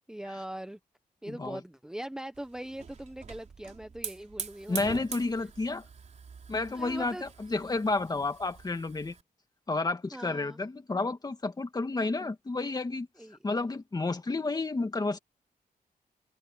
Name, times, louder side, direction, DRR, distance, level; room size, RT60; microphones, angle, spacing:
voice 1, 0.1-0.8 1.2-5.0 6.7-7.2 10.1-10.6 13.2-13.4, right 1 dB, 5° right, 0.8 m, -41 dB
voice 2, 1.3-1.6 4.7-5.8 6.5-9.1 9.7-13.1 13.4-15.2, left 3 dB, 25° left, 2.0 m, -31 dB
Hiss / Fire, 2.3-9.2, right 5 dB, 50° right, 4.1 m, -44 dB
wide cardioid pair, 150°, 16 cm